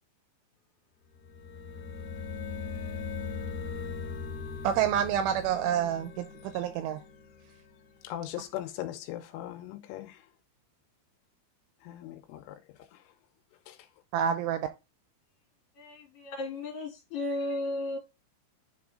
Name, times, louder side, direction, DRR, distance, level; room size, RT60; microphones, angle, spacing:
sound 1, 1.1-7.9, left 5 dB, 65° left, 2.9 m, -39 dB
voice 1, 4.6-7.0 14.1-14.7, right 9 dB, 85° right, 2.8 m, -28 dB
voice 2, 8.0-10.1 11.9-12.4, left 13 dB, 85° left, 3.2 m, -38 dB
voice 3, 15.8-18.0, left 2 dB, 50° left, 3.4 m, -34 dB
10.5 x 3.5 x 3.7 m
omnidirectional pair, 6.0 m